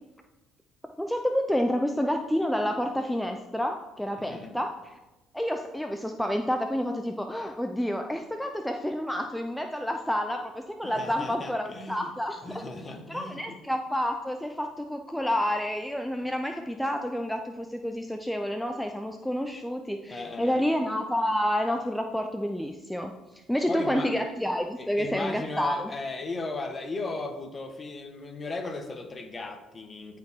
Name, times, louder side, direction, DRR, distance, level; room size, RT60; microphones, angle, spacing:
voice 1, 1.0-4.7 5.3-12.6 13.1-25.9, equal, 5° left, 4 dB, 0.6 m, -29 dB
voice 2, 4.2-4.6 10.8-12.1 12.4-13.6 20.1-20.6 23.7-24.1 24.8-30.2, left 3 dB, 30° left, 6 dB, 1.4 m, -36 dB
13.5 x 5.0 x 3.7 m, 1.1 s
supercardioid pair, 70°, 0 cm